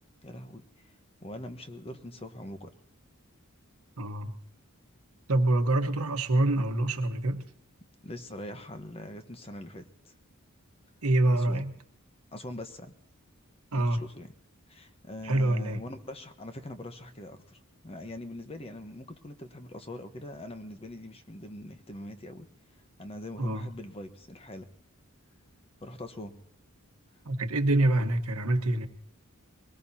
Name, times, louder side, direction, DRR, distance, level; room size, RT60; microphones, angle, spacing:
voice 1, 0.2-0.9 1.2-2.7 8.0-10.1 11.3-11.7 12.3-12.9 13.7-14.3 14.7-17.6 17.8-22.5 23.0-24.7 25.8-26.4, left 1 dB, 25° left, 8 dB, 1.1 m, -42 dB
voice 2, 4.0-4.3 5.3-7.4 11.0-11.7 13.7-14.0 15.2-15.8 23.4-23.7 27.2-28.9, right 1 dB, 75° right, 7 dB, 1.3 m, -26 dB
23.0 x 19.0 x 2.8 m, 0.71 s
head